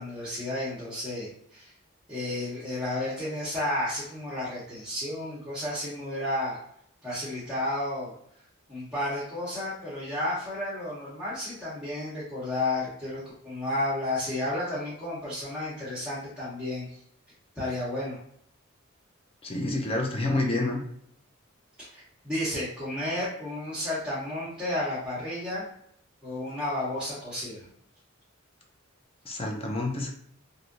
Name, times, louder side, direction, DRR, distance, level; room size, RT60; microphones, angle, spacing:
voice 1, 0.0-1.7 2.1-6.6 7.0-8.1 8.7-16.9 17.5-18.2 21.8-25.6 26.2-27.7, left 1 dB, 5° right, -10 dB, 0.9 m, -32 dB
voice 2, 19.4-20.8 29.3-30.1, left 2 dB, 25° left, 1 dB, 0.5 m, -28 dB
3.1 x 2.6 x 2.6 m, 0.70 s
head